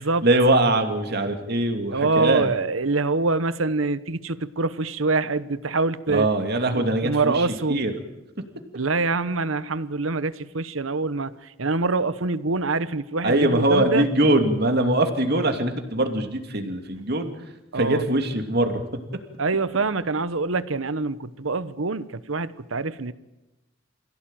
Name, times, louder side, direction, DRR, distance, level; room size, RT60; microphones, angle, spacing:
voice 1, 0.0-2.5 6.1-7.9 13.2-17.3 17.7-18.8, right 1 dB, 55° right, 5 dB, 2.7 m, -22 dB
voice 2, 1.9-6.3 6.7-7.8 8.7-14.1 17.7-18.0 19.4-23.1, right 3 dB, 80° right, 15 dB, 1.1 m, -25 dB
27.0 x 16.5 x 9.1 m, 1.0 s
head